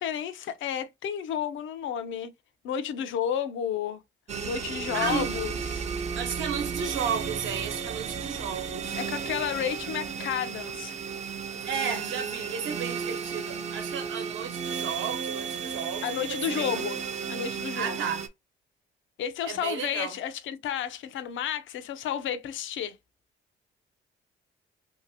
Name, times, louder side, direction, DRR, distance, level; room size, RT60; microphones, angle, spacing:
voice 1, 0.0-2.3 2.6-4.0 4.4-5.9 9.0-10.9 16.0-17.0 17.3-17.9 19.2-23.0, left 9 dB, 75° left, 0.5 m, -31 dB
sound 1, 4.3-18.3, right 6 dB, 35° right, 0.4 m, -34 dB
voice 2, 4.9-5.3 6.1-9.0 11.5-16.9 17.7-18.2 19.4-20.2, right 7 dB, 80° right, 1.0 m, -33 dB
2.8 x 2.8 x 2.6 m
cardioid pair, 90°, 20 cm